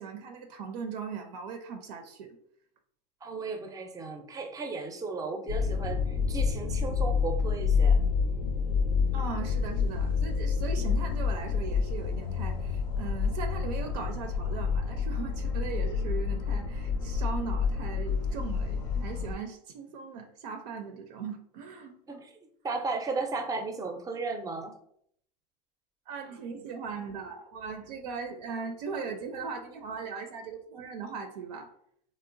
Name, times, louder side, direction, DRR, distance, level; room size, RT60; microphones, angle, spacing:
voice 1, 0.0-2.4 9.1-22.2 26.1-31.7, right 5 dB, 75° right, 5 dB, 0.5 m, -39 dB
voice 2, 3.2-8.0 22.1-22.3 22.6-24.8, right 4 dB, 15° right, 4 dB, 0.4 m, -35 dB
sound 1, 5.5-19.3, left 5 dB, 65° left, 0.5 m, -28 dB
2.9 x 2.0 x 2.5 m, 0.67 s
hypercardioid pair, 100°, 21 cm